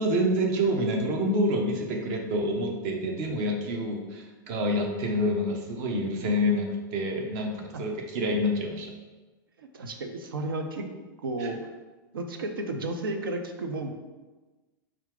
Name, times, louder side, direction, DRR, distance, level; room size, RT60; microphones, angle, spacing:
voice 1, 0.0-8.9 11.4-11.5, equal, 55° right, 2 dB, 0.8 m, -27 dB
voice 2, 9.6-10.9 11.2-11.6 12.1-13.9, right 2 dB, 85° right, 5 dB, 0.5 m, -33 dB
4.3 x 2.5 x 3.5 m, 1.2 s
hypercardioid pair, 100°, 11 cm